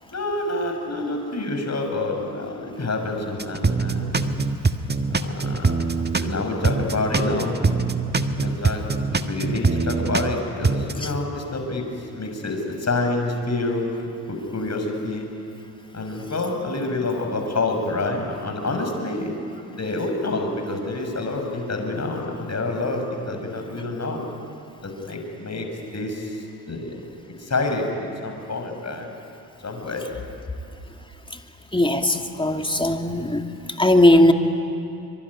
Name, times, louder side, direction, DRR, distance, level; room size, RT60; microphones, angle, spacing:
voice 1, 0.1-4.1 5.1-5.7 6.1-7.6 8.4-8.9 9.1-11.8 12.1-13.8 14.3-15.3 15.9-19.3 19.7-24.2 24.8-25.7 25.9-26.4 26.7-26.9 27.4-29.1 29.6-30.1, left 2 dB, 35° left, 3 dB, 6.4 m, -27 dB
sound 1, 3.4-6.3 6.6-10.3 10.6-10.9, right 4 dB, 20° right, 1.6 m, -23 dB
voice 2, 31.7-33.4 33.8-34.3, left 1 dB, 10° left, 5 dB, 2.6 m, -18 dB
24.5 x 24.0 x 9.9 m, 2.7 s
hypercardioid pair, 45°, 48 cm